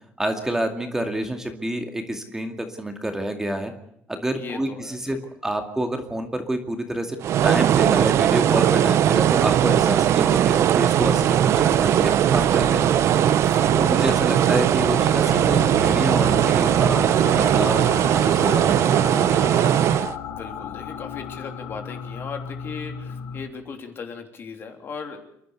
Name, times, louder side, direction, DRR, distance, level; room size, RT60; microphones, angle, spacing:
voice 1, 0.2-3.7 4.1-5.2 5.4-7.2 7.4-12.9 13.3-13.4 13.7-19.8, right 1 dB, 10° right, 5 dB, 2.3 m, -28 dB
voice 2, 4.3-5.2 12.4-14.4 20.3-25.2, left 5 dB, 45° left, 4 dB, 3.3 m, -38 dB
sound 1, 7.2-20.1, right 10 dB, 60° right, 0.7 m, -19 dB
sound 2, 9.9-23.4, left 7 dB, 75° left, 2.5 m, -35 dB
29.0 x 11.5 x 8.1 m, 0.73 s
cardioid pair, 120°, 5 cm